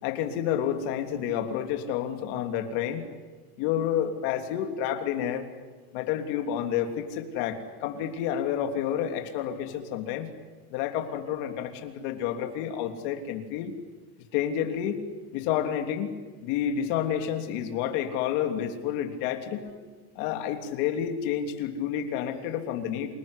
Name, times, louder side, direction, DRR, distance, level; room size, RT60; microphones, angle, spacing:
voice 1, 0.0-3.0 3.6-5.5 5.9-10.3 10.7-13.7 14.3-15.0 15.3-19.7 20.1-23.2, left 9 dB, 55° left, 5 dB, 3.2 m, -29 dB
28.5 x 20.0 x 9.9 m, 1.4 s
supercardioid pair, 170°, 32 cm